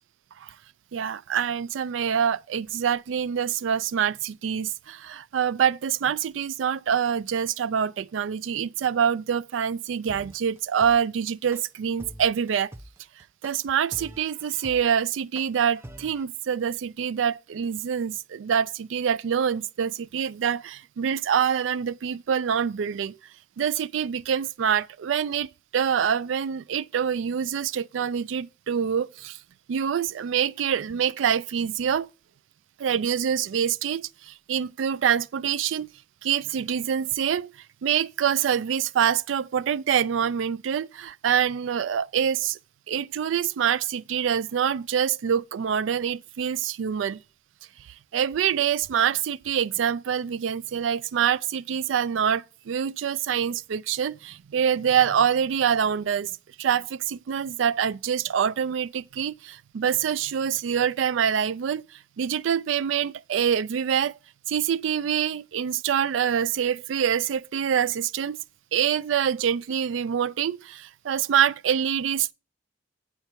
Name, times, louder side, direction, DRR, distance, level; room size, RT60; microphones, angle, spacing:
voice 1, 0.9-12.7 13.4-23.2 23.6-29.4 29.7-32.1 32.8-35.9 36.2-37.5 37.8-42.6 42.9-47.2 48.1-61.8 62.2-64.1 64.5-68.4 68.7-72.3, right 8 dB, 85° right, 0.4 m, -25 dB
sound 1, 10.1-16.2, right 1 dB, 15° right, 0.6 m, -44 dB
9.2 x 5.7 x 4.4 m
head